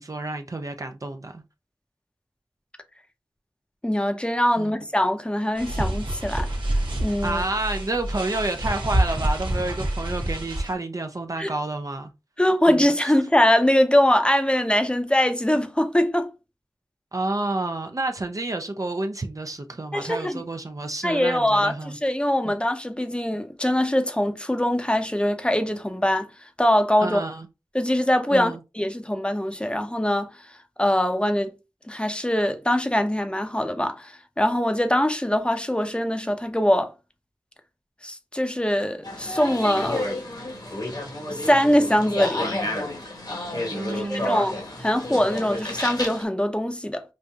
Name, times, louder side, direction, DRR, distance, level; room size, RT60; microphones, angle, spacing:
voice 1, 0.0-1.4 4.6-4.8 7.2-12.1 12.7-13.1 17.1-22.0 22.4-22.5 27.0-27.5 28.3-28.6 43.7-44.4, right 2 dB, 45° right, 0.4 m, -29 dB
voice 2, 3.8-6.5 7.0-7.4 11.4-11.5 12.4-16.3 19.9-20.4 21.0-21.7 22.0-26.3 26.6-27.2 27.7-30.3 30.8-31.5 31.9-36.9 38.0-40.1 41.3-42.5 43.9-47.0, left 1 dB, 10° left, 0.6 m, -22 dB
sound 1, 5.6-10.7, right 1 dB, 75° right, 1.0 m, -27 dB
sound 2, 39.0-46.2, left 1 dB, 60° left, 1.2 m, -30 dB
5.1 x 2.6 x 2.3 m
wide cardioid pair, 55°, 8 cm